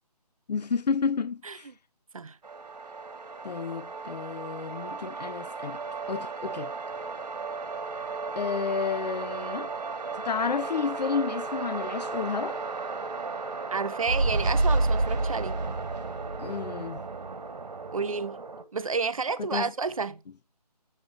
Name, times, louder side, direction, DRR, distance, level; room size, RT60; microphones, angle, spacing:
voice 1, 0.5-1.7 3.4-5.8 6.1-6.7 8.4-9.7 10.2-12.6 16.4-17.0 19.4-19.7, left 6 dB, 80° left, 0.5 m, -31 dB
sound 1, 2.4-18.6, right 3 dB, 75° right, 1.3 m, -32 dB
voice 2, 13.7-15.6 17.9-18.4 18.7-20.2, right 4 dB, 55° right, 0.4 m, -30 dB
7.3 x 2.7 x 5.0 m
figure-of-eight pair, 180°, 21 cm